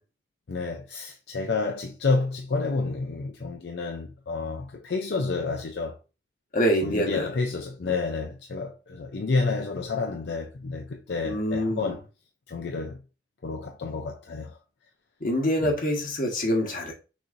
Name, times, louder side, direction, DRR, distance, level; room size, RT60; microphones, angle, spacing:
voice 1, 0.5-6.0 6.8-12.0 12.5-13.0 13.4-14.6 15.6-15.7, left 3 dB, 70° left, 0.5 m, -29 dB
voice 2, 6.5-7.3 11.2-11.9 15.2-16.9, equal, 50° left, 1.3 m, -25 dB
6.1 x 3.1 x 2.5 m
head